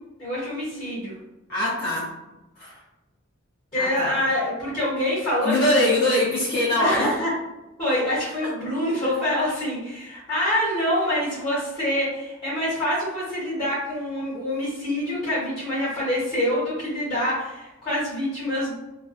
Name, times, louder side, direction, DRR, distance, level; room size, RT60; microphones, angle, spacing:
voice 1, 0.2-1.2 3.7-5.8 6.8-7.3 7.8-18.7, left 1 dB, 25° left, -10 dB, 1.1 m, -26 dB
voice 2, 1.5-2.1 2.6-2.7 3.7-4.2 5.4-7.1 8.4-8.5, left 1 dB, 45° left, -8 dB, 0.6 m, -22 dB
2.4 x 2.2 x 2.5 m, 1.0 s
head